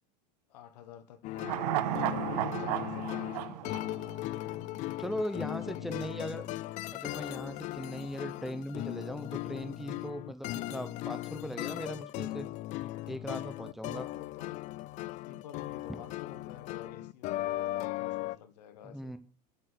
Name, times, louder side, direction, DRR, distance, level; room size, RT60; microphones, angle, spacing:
voice 1, 0.5-4.5 5.3-6.7 13.8-14.6 15.2-19.2, left 9 dB, 80° left, 1.5 m, -50 dB
sound 1, 1.2-18.4, left 16 dB, 35° left, 0.4 m, -38 dB
sound 2, 1.4-4.8 5.1-5.2, right 16 dB, 65° right, 0.7 m, -34 dB
voice 2, 5.0-6.4 6.9-12.5 13.1-14.1 18.8-19.2, equal, ahead, 0.9 m, -39 dB
9.0 x 6.1 x 8.1 m
supercardioid pair, 135°, 21 cm